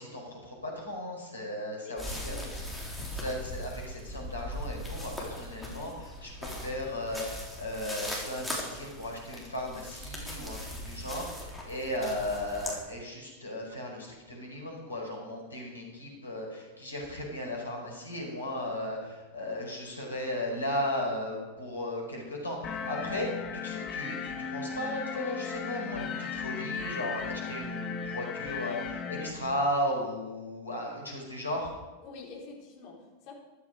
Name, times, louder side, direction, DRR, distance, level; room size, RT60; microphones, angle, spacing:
voice 1, 0.0-2.4 2.9-23.3 23.6-31.7, left 1 dB, 80° left, -1 dB, 5.0 m, -36 dB
voice 2, 1.8-2.6 32.0-33.3, left 4 dB, 45° left, -2 dB, 4.2 m, -47 dB
sound 1, 2.0-12.8, equal, ahead, 4.0 m, -39 dB
sound 2, 22.6-29.3, left 6 dB, 30° left, 1.6 m, -36 dB
14.5 x 12.0 x 5.1 m, 1.2 s
figure-of-eight pair, 90°, 0 cm